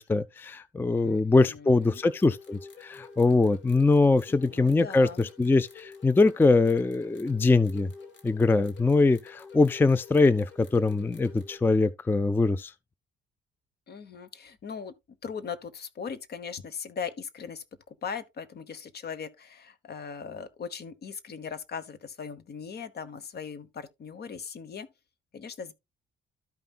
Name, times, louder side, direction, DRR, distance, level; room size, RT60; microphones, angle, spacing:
voice 1, 0.0-7.9 8.2-12.7, left 3 dB, 10° left, 0.4 m, -23 dB
voice 2, 1.0-2.0 4.3-5.3 13.9-14.9 15.2-24.9 25.3-25.7, left 6 dB, 55° left, 1.1 m, -39 dB
sound 1, 1.8-11.6, left 5 dB, 70° left, 2.4 m, -49 dB
13.0 x 5.5 x 2.4 m
cardioid pair, 90°, 20 cm